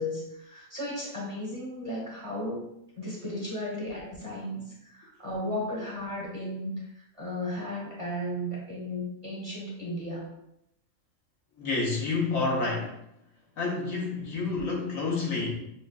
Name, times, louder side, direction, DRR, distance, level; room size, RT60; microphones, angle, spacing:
voice 1, 0.0-2.7 3.0-10.3, left 1 dB, 25° right, -5 dB, 1.0 m, -35 dB
voice 2, 11.6-12.9 13.6-15.5, left 3 dB, 80° left, -3 dB, 1.5 m, -29 dB
6.6 x 2.4 x 2.4 m, 0.79 s
omnidirectional pair, 1.4 m